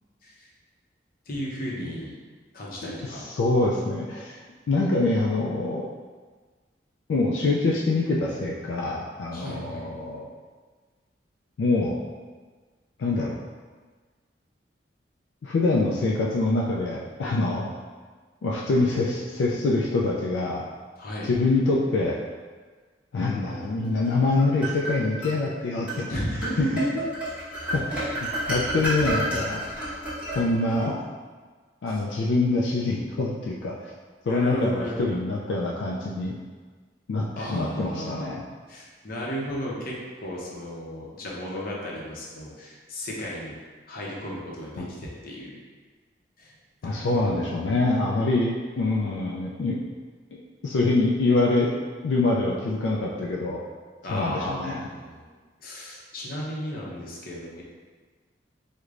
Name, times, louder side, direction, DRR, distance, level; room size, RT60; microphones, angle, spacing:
voice 1, 1.3-2.1 2.5-3.2 9.3-9.9 21.0-21.3 26.1-26.9 27.5-27.8 28.3-28.4 31.9-32.0 34.2-35.2 37.4-38.3 38.7-43.5 43.9-45.6 46.4-46.5 46.8-47.5 54.0-55.2 55.6-57.6, equal, 55° left, -4 dB, 0.7 m, -34 dB
voice 2, 2.8-4.4 4.7-5.9 7.1-10.3 11.6-12.0 13.0-13.4 15.4-17.7 18.4-20.7 21.2-22.2 23.1-26.1 26.6-26.7 27.7-29.6 30.3-31.0 31.8-33.9 34.3-36.3 37.1-38.4 44.8-44.9 46.8-49.8 50.3-51.7 52.0-53.6 54.1-54.9, left 2 dB, 85° left, -3 dB, 0.3 m, -25 dB
sound 1, 24.0-25.4 25.9-26.0 26.4-30.8, right 1 dB, 5° right, 1.2 m, -30 dB
4.6 x 2.1 x 2.5 m, 1.4 s
head